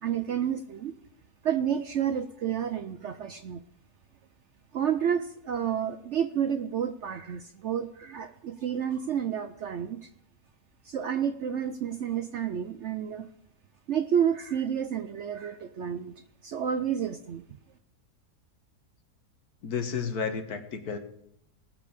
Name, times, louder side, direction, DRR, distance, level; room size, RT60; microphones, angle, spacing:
voice 1, 0.0-0.9 1.4-3.6 4.7-10.1 10.9-13.3 13.9-16.1 16.4-17.4, right 8 dB, 65° right, 9 dB, 0.7 m, -30 dB
voice 2, 19.6-21.0, left 6 dB, 70° left, 7 dB, 1.7 m, -32 dB
19.0 x 6.7 x 5.1 m, 0.72 s
omnidirectional pair, 1.7 m